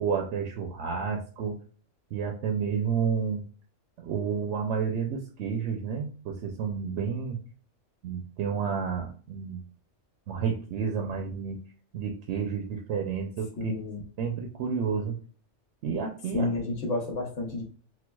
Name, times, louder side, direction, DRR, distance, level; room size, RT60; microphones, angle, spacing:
voice 1, 0.0-1.6 2.1-3.4 4.0-7.4 8.0-9.6 10.3-11.6 11.9-13.7 14.2-15.2 15.8-16.5, right 6 dB, 70° right, 2 dB, 0.8 m, -30 dB
voice 2, 13.6-14.0 16.3-17.6, left 2 dB, 80° left, 1 dB, 1.2 m, -30 dB
4.4 x 2.1 x 2.2 m, 0.40 s
omnidirectional pair, 1.3 m